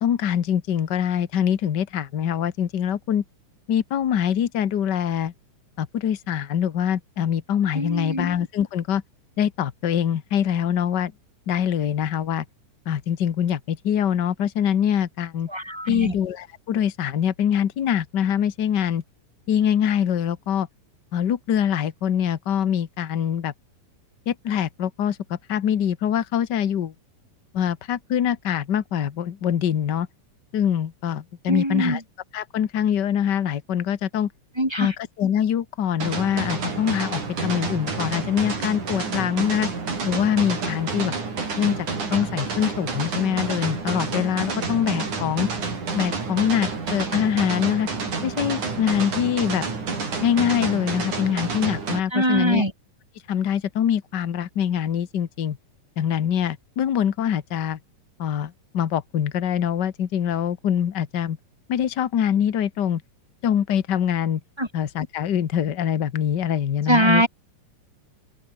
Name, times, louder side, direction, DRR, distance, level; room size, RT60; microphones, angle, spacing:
voice 1, 0.0-3.2 3.7-5.3 5.8-9.0 9.4-11.1 11.5-12.4 12.8-15.5 15.9-19.0 19.5-20.7 21.1-23.5 24.3-26.9 27.5-30.1 30.5-32.0 32.3-34.3 34.8-39.7 40.0-41.1 41.6-45.5 45.9-47.9 48.2-49.6 50.2-52.6 53.3-55.6 56.0-57.8 58.2-61.4 61.7-63.0 63.4-64.4 64.7-67.2, left 9 dB, 75° left, 0.9 m, -24 dB
voice 2, 7.7-8.3 15.5-16.1 31.5-32.0 34.6-34.9 52.1-52.7 64.6-64.7 66.9-67.3, equal, 5° right, 4.1 m, -22 dB
sound 1, 36.0-52.0, right 4 dB, 60° right, 7.3 m, -29 dB
omnidirectional pair, 3.9 m